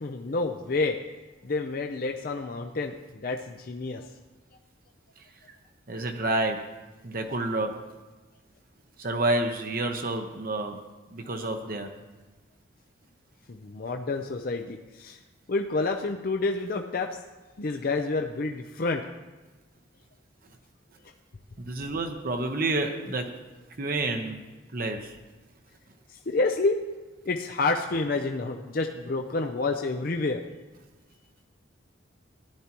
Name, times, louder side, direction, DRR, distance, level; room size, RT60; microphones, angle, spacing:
voice 1, 0.0-1.0 1.4-4.1 13.5-15.2 15.5-17.1 17.6-19.0 26.1-26.8 27.3-30.4, left 3 dB, 50° left, 4 dB, 0.5 m, -29 dB
voice 2, 5.9-6.7 7.0-7.8 9.0-10.8 11.1-11.9 21.6-23.3 23.8-24.4 24.7-25.2, right 2 dB, 50° right, 4 dB, 0.8 m, -29 dB
14.5 x 11.0 x 3.0 m, 1.2 s
head